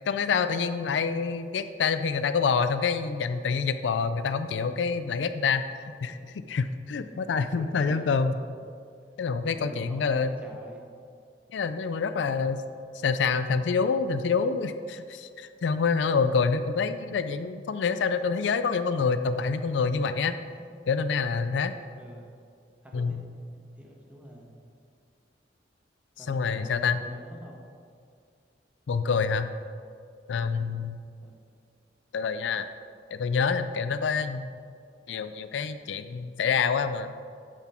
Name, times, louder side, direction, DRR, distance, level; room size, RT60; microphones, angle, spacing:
voice 1, 0.1-6.1 6.5-8.3 9.2-10.3 11.5-12.6 12.9-20.3 20.9-21.7 22.9-23.2 26.3-27.0 28.9-29.5 30.3-31.0 32.1-32.7 33.1-34.5 35.1-37.1, left 5 dB, 80° left, 11 dB, 0.4 m, -27 dB
voice 2, 7.5-8.2 9.5-10.8 22.0-22.3 22.8-23.2 23.4-24.6 26.2-27.7 31.2-31.4, equal, 10° right, -1 dB, 1.2 m, -47 dB
9.1 x 6.1 x 4.3 m, 2.3 s
head